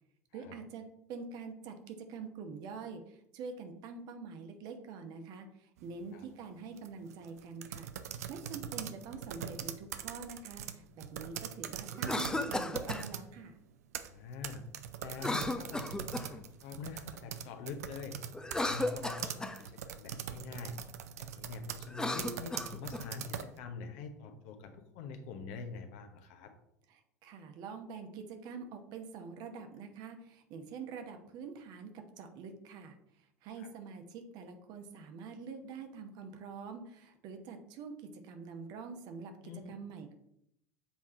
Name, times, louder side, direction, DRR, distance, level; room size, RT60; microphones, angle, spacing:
voice 1, 0.3-13.6 26.9-40.1, right 5 dB, 50° right, 6 dB, 1.0 m, -46 dB
sound 1, 5.8-6.1 6.7-13.3 13.7-23.6, right 9 dB, 70° right, 0.5 m, -42 dB
Cough, 11.9-13.1 15.2-16.4 18.3-19.6 21.8-23.1, left 2 dB, 10° left, 0.6 m, -35 dB
voice 2, 14.0-14.6 15.0-18.2 18.6-20.8 21.2-26.5 33.6-33.7 39.4-39.7, left 4 dB, 60° left, 6 dB, 1.0 m, -45 dB
7.3 x 3.6 x 4.3 m, 0.77 s
figure-of-eight pair, 75°, 9 cm